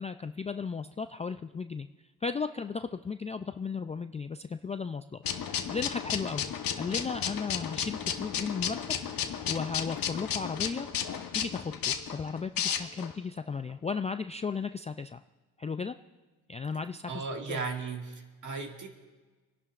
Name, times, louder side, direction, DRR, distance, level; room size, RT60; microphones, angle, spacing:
voice 1, 0.0-1.9 2.2-5.2 5.7-6.4 6.8-9.0 9.5-10.9 11.3-15.2 15.6-15.9 16.5-17.6, left 5 dB, 15° left, 9 dB, 0.3 m, -35 dB
sound 1, 5.2-13.1, left 8 dB, 55° left, 1.1 m, -33 dB
voice 2, 17.1-18.9, right 4 dB, 45° right, 3 dB, 2.0 m, -36 dB
28.5 x 11.0 x 2.5 m, 1.3 s
cardioid pair, 80°, 42 cm